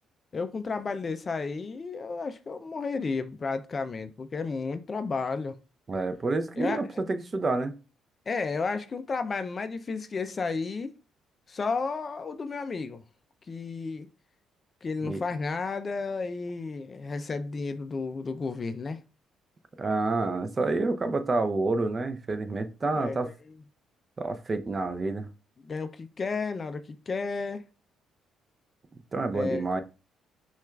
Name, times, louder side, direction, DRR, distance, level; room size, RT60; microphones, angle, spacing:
voice 1, 0.3-5.6 6.6-6.8 8.3-10.9 11.5-13.0 13.5-14.1 14.8-19.0 22.9-23.3 25.6-27.6 29.3-29.8, left 4 dB, 40° left, 0.3 m, -32 dB
voice 2, 5.9-7.7 15.0-15.2 19.8-23.3 24.2-25.3 28.9-29.8, right 3 dB, 35° right, 0.5 m, -28 dB
5.9 x 2.3 x 2.3 m
supercardioid pair, 75°, 0 cm